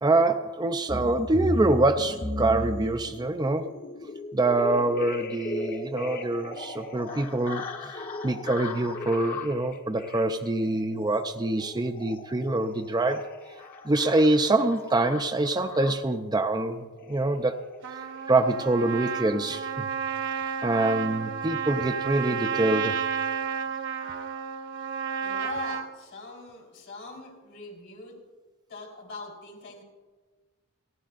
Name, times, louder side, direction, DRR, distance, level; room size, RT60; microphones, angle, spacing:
voice 1, 0.0-3.7 4.3-13.3 13.8-17.5 18.3-19.9 20.6-23.0, right 2 dB, 20° right, 6 dB, 0.5 m, -25 dB
sound 1, 0.9-16.3 17.0-17.3 17.5-17.8 18.0-18.2 18.5-18.7, left 2 dB, 45° left, 1.3 m, -37 dB
Trumpet, 17.8-25.9, right 7 dB, 60° right, 0.9 m, -31 dB
voice 2, 25.2-28.2 28.7-29.8, left 3 dB, 60° left, -1 dB, 3.9 m, -41 dB
29.0 x 11.0 x 2.5 m, 1.3 s
head